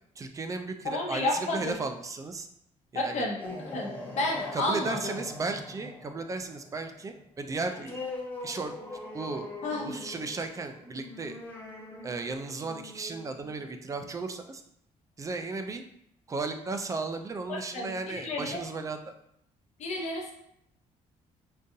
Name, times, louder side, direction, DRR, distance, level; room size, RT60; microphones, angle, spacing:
voice 1, 0.2-2.5 2.9-3.2 4.5-8.0 8.4-8.7 9.1-9.5 9.8-11.4 12.0-14.6 15.2-15.8 16.3-19.1, right 3 dB, 25° right, 7 dB, 0.3 m, -35 dB
voice 2, 0.8-1.8 2.9-5.1 9.6-10.0 17.5-18.6 19.8-20.3, left 2 dB, 55° left, -1 dB, 0.7 m, -31 dB
sound 1, 3.2-14.3, left 2 dB, 15° left, 0.6 m, -42 dB
3.8 x 2.5 x 2.6 m, 0.74 s
cardioid pair, 120°, 14 cm